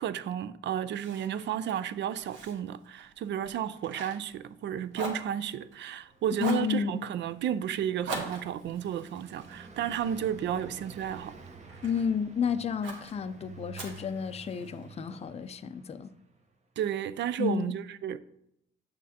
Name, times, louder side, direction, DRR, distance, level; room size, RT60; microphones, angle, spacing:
voice 1, 0.0-11.4 16.8-18.2, right 10 dB, 65° right, 0.4 m, -32 dB
Fire, 0.9-4.7 4.9-6.0 6.4-6.7 8.1-10.5 11.0-12.1 12.8-13.1 13.7-14.8, right 3 dB, 85° right, 1.4 m, -42 dB
Car passing by, 5.5-16.4, right 3 dB, 35° right, 0.9 m, -50 dB
voice 2, 6.4-7.0 11.8-16.1 17.4-17.7, left 6 dB, 30° left, 0.4 m, -31 dB
8.1 x 6.2 x 2.8 m
cardioid pair, 90°, 20 cm